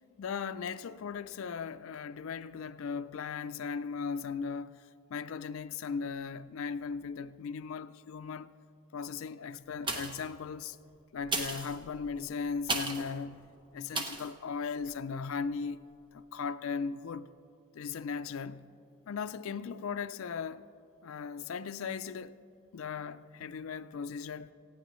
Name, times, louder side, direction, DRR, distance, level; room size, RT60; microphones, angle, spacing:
voice 1, 0.2-4.8 5.1-8.5 8.9-10.8 11.1-15.8 16.1-17.3 17.7-18.7 19.1-20.6 21.0-22.4 22.7-24.5, left 5 dB, 70° left, 0.4 m, -37 dB
sound 1, 9.8-10.4 11.2-13.1 13.9-14.3 14.8-14.9, right 2 dB, 20° right, 0.8 m, -35 dB
19.0 x 15.5 x 3.1 m
head